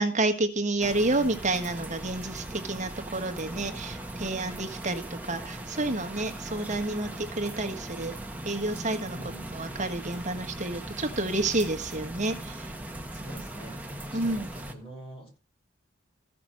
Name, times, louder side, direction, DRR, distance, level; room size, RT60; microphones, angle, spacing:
voice 1, 0.0-8.1 8.4-9.2 9.5-12.7 14.1-14.5, right 2 dB, 40° right, 6 dB, 1.4 m, -29 dB
sound 1, 0.8-14.7, right 1 dB, 10° right, 1.1 m, -39 dB
voice 2, 9.1-9.8 13.1-13.8 14.0-15.3, right 1 dB, 30° left, 0 dB, 5.3 m, -45 dB
14.5 x 6.0 x 6.3 m, 0.35 s
head